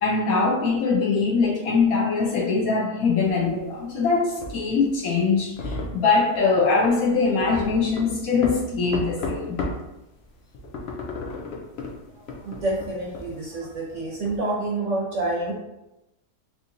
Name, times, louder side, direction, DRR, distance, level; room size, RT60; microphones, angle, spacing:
voice 1, 0.0-9.6, left 4 dB, 70° left, -2 dB, 1.0 m, -22 dB
sound 1, 3.2-9.9 10.2-14.4, left 2 dB, 85° left, 0.5 m, -34 dB
voice 2, 12.4-15.5, right 2 dB, 60° right, -3 dB, 0.9 m, -28 dB
3.6 x 2.8 x 2.5 m, 0.94 s
omnidirectional pair, 1.7 m